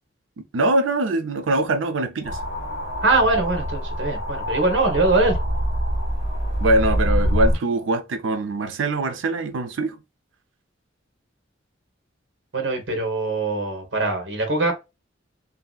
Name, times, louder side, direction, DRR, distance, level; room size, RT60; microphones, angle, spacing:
voice 1, 0.5-2.4 6.6-10.0, right 2 dB, 90° right, 0.5 m, -23 dB
sound 1, 2.2-7.6, equal, 45° left, 1.9 m, -25 dB
voice 2, 3.0-5.4 12.5-14.7, right 2 dB, 70° right, 1.0 m, -22 dB
3.0 x 2.7 x 2.2 m
head